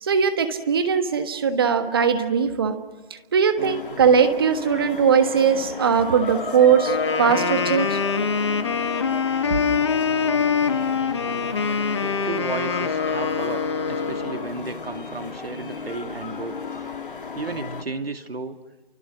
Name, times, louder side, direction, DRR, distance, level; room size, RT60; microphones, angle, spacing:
voice 1, 0.0-2.8 3.3-8.0, right 6 dB, 25° right, 9 dB, 1.4 m, -20 dB
sound 1, 3.6-17.8, left 4 dB, 60° left, 2.3 m, -33 dB
Wind instrument woodwind instrument, 6.8-14.5, left 5 dB, 30° left, 1.2 m, -24 dB
voice 2, 12.0-16.6 17.3-18.6, right 3 dB, 80° right, 7 dB, 2.5 m, -33 dB
29.5 x 24.5 x 6.2 m, 1.2 s
figure-of-eight pair, 160°, 30 cm